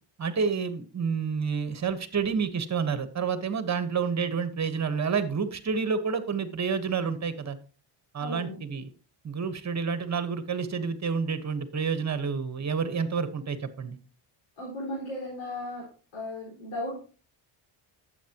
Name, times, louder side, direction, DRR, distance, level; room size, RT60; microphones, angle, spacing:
voice 1, 0.2-7.6 8.1-8.9 9.2-14.0, right 5 dB, 35° right, 11 dB, 1.3 m, -29 dB
voice 2, 8.2-8.6 14.6-15.9 16.1-17.0, left 1 dB, 65° left, -5 dB, 4.9 m, -36 dB
11.5 x 8.1 x 2.9 m, 0.37 s
cardioid pair, 100°, 50 cm